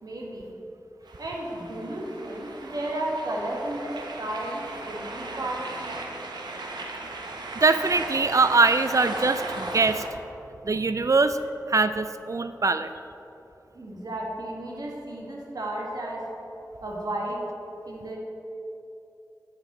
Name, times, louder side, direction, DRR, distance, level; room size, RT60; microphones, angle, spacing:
voice 1, 0.0-0.5 1.0-6.0 13.7-16.2 16.8-17.4 17.8-18.2, right 1 dB, 65° right, -3 dB, 1.5 m, -33 dB
sound 1, 1.1-10.1, right 2 dB, 90° right, 0.7 m, -37 dB
voice 2, 7.5-10.0 10.6-11.4 11.7-12.9, right 3 dB, 50° right, 11 dB, 0.4 m, -22 dB
10.5 x 5.2 x 4.2 m, 2.9 s
cardioid pair, 40°, 7 cm